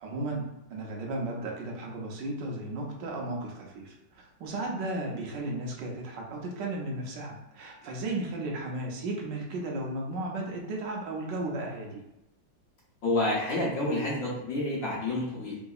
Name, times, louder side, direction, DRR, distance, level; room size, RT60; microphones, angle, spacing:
voice 1, 0.0-12.0, right 2 dB, 90° right, 0 dB, 1.4 m, -35 dB
voice 2, 13.0-15.6, left 2 dB, 55° left, -6 dB, 1.1 m, -29 dB
3.8 x 2.6 x 2.4 m, 0.89 s
omnidirectional pair, 1.9 m